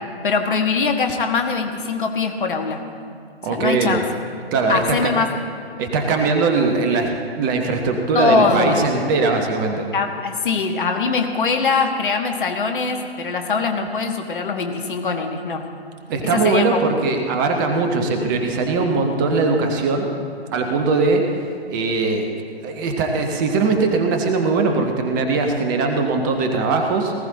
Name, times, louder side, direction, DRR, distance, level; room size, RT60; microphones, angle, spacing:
voice 1, 0.2-2.8 3.5-4.0 4.7-5.3 8.1-8.9 9.9-15.6 16.3-16.6, left 4 dB, 50° left, 5 dB, 1.5 m, -22 dB
voice 2, 3.4-4.0 4.5-5.3 5.8-7.1 7.4-9.9 16.1-20.1 20.5-21.3 21.7-22.3 22.6-27.1, right 4 dB, 20° right, 4 dB, 0.9 m, -20 dB
18.5 x 14.5 x 3.9 m, 2.2 s
figure-of-eight pair, 130°, 32 cm